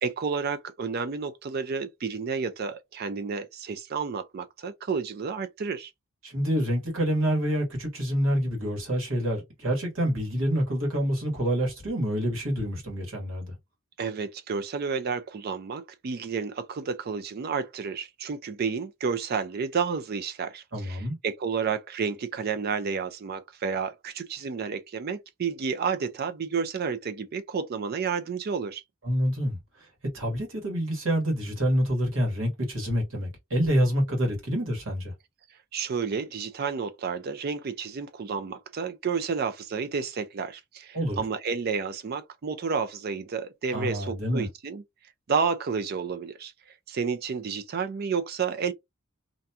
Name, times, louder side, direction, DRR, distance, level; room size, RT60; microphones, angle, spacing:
voice 1, 0.0-5.9 14.0-28.8 35.7-44.8 45.3-46.5 46.9-48.7, right 5 dB, 50° right, 0.4 m, -31 dB
voice 2, 6.2-13.5 20.7-21.2 29.0-29.6 30.1-35.1 40.9-41.2 43.7-44.5, equal, 70° right, 1.4 m, -27 dB
2.6 x 2.2 x 2.7 m
head